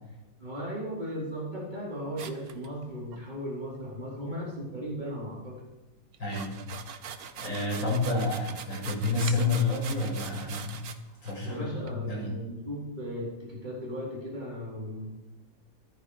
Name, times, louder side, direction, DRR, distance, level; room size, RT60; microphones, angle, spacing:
voice 1, 0.4-5.6 11.4-15.0, equal, 20° right, -5 dB, 4.4 m, -36 dB
sound 1, 2.2-3.2 6.1-11.0 11.2-11.3 11.9-12.0, right 7 dB, 55° right, 1.3 m, -42 dB
voice 2, 6.2-6.6 7.4-10.8 11.2-12.3, left 3 dB, 75° left, -5 dB, 6.7 m, -29 dB
14.0 x 14.0 x 5.0 m, 1.1 s
omnidirectional pair, 2.0 m